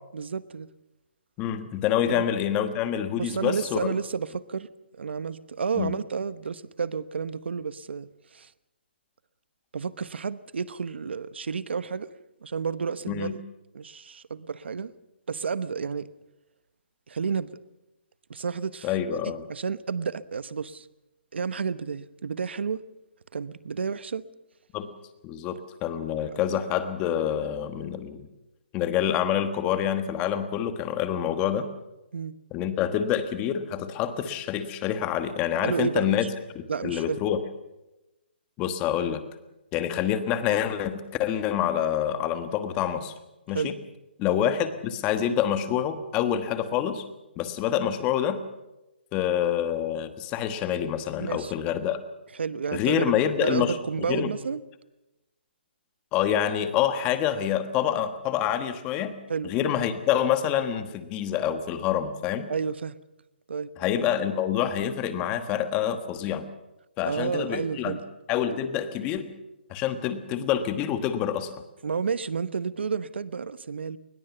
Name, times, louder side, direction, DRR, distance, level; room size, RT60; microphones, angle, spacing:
voice 1, 0.1-0.7 2.1-2.2 3.2-4.7 4.9-8.5 9.7-12.1 12.4-13.4 13.7-14.9 15.3-16.1 17.1-17.5 18.3-18.9 19.5-20.9 21.3-22.8 23.3-24.3 26.3-26.4 32.1-32.4 35.6-36.3 36.7-37.2 43.5-43.7 51.2-51.5 52.4-54.6 59.3-59.5 62.5-63.0 63.5-63.7 67.0-68.0 71.8-74.0, right 5 dB, 75° right, 16 dB, 1.0 m, -31 dB
voice 2, 1.4-3.8 5.7-5.9 13.1-13.4 18.8-19.4 24.7-24.9 25.2-28.3 28.7-31.7 32.5-36.2 36.5-37.4 38.6-39.2 39.7-43.1 43.5-43.7 44.2-47.0 47.4-48.4 49.1-52.0 52.7-53.8 54.1-54.3 56.1-59.1 59.4-62.5 63.8-66.5 67.0-68.0 68.3-69.3 69.7-71.5, left 10 dB, 15° left, 10 dB, 1.3 m, -27 dB
20.5 x 20.5 x 7.0 m, 0.97 s
hypercardioid pair, 165°, 6 cm